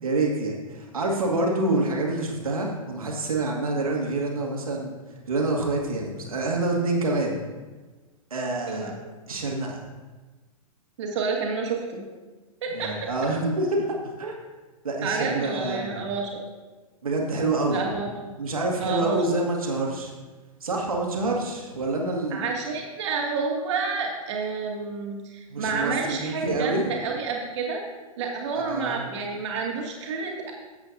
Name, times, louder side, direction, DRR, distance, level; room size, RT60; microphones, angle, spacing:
voice 1, 0.0-5.0 5.3-7.3 8.3-8.9 9.3-9.8 12.7-14.4 14.8-16.0 17.0-17.9 18.4-20.1 20.6-22.5 25.5-26.9 28.5-29.0, right 2 dB, 75° right, 0 dB, 2.1 m, -27 dB
voice 2, 11.0-12.0 12.6-12.9 15.0-16.3 17.7-18.1 18.8-19.2 22.3-27.8 28.2-30.5, right 4 dB, 55° right, -1 dB, 2.2 m, -29 dB
14.0 x 8.1 x 2.7 m, 1.2 s
figure-of-eight pair, 105°, 19 cm